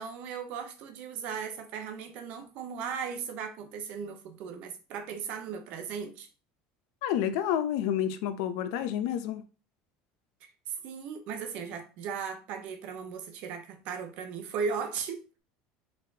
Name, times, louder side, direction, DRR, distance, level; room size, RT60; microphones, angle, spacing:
voice 1, 0.0-6.3 10.4-15.2, right 6 dB, 50° right, 0.8 m, -37 dB
voice 2, 7.0-9.4, left 10 dB, 70° left, 0.6 m, -29 dB
4.2 x 3.5 x 2.8 m
cardioid pair, 160°, 3 cm